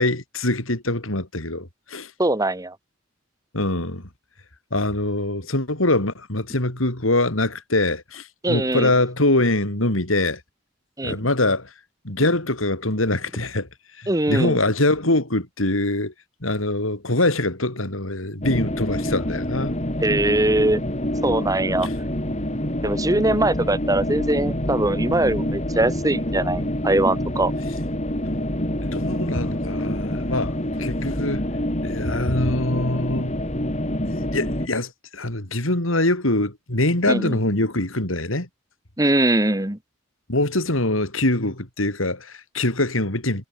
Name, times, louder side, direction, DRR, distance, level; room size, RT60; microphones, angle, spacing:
voice 1, 0.0-2.1 3.5-4.0 4.7-10.4 11.0-11.7 12.0-13.7 14.0-16.1 16.4-19.8 21.8-21.9 28.3-28.4 28.8-31.4 31.8-33.3 34.0-38.5 40.3-43.5, left 2 dB, 85° left, 4.8 m, -23 dB
voice 2, 2.2-2.7 8.4-8.9 11.0-11.2 14.1-14.6 20.0-20.8 21.2-21.9 22.8-27.5 37.1-37.4 39.0-39.8, right 1 dB, 15° right, 1.6 m, -21 dB
sound 1, 18.4-34.7, left 1 dB, 35° left, 6.0 m, -26 dB
head